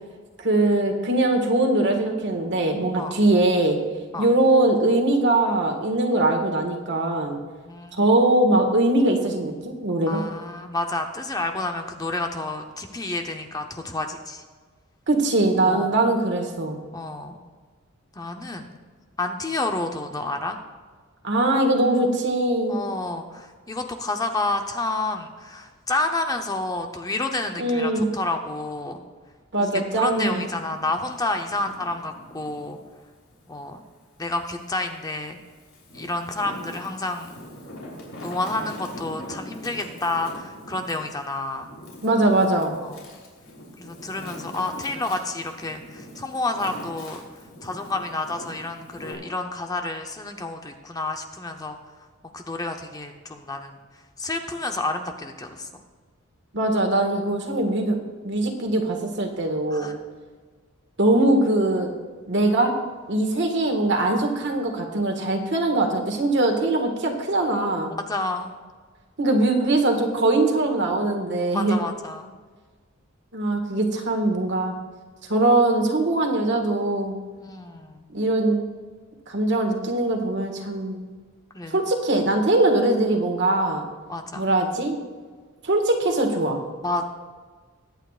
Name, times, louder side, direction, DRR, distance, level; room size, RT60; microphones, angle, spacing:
voice 1, 0.4-3.8 4.2-7.4 8.0-10.2 15.1-16.8 21.2-22.8 27.6-28.1 29.5-30.5 42.0-42.7 56.5-58.0 58.2-59.9 61.0-61.9 62.3-62.7 63.1-67.9 69.2-71.8 73.3-74.7 75.3-77.2 78.1-78.6 79.3-81.1 81.7-83.8 84.3-85.0 85.6-86.6, right 2 dB, 55° right, 3 dB, 1.7 m, -21 dB
voice 2, 7.7-8.0 10.1-14.4 15.6-15.9 16.9-17.4 18.1-18.7 19.2-20.6 22.7-29.0 29.6-32.8 33.5-33.8 34.2-35.4 35.9-37.3 38.2-41.7 42.8-43.0 43.8-47.2 47.6-51.8 52.3-53.8 54.2-55.7 59.7-60.0 68.0-68.5 71.5-72.3 77.4-78.1 81.5-81.8 84.1-84.5 86.8-87.0, left 2 dB, 20° left, 5 dB, 0.7 m, -29 dB
Wind, 29.9-32.8 33.3-34.6 35.2-49.1, left 1 dB, 70° left, 3.5 m, -42 dB
22.0 x 9.0 x 2.5 m, 1.5 s
head